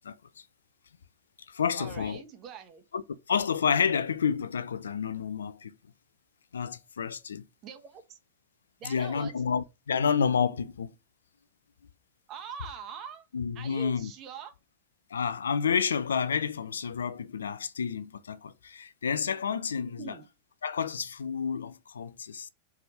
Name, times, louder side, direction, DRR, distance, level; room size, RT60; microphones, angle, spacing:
voice 1, 0.0-0.4 1.5-2.2 2.9-3.0 3.3-5.7 6.5-7.4 8.8-10.9 13.3-14.1 15.1-20.1 20.6-22.5, left 6 dB, 70° left, 0.5 m, -30 dB
voice 2, 1.7-2.8 7.6-8.2 8.8-9.3 12.3-13.3 13.5-14.5 20.0-20.3, right 7 dB, 35° right, 1.4 m, -43 dB
5.8 x 3.6 x 4.9 m
figure-of-eight pair, 90°, 0 cm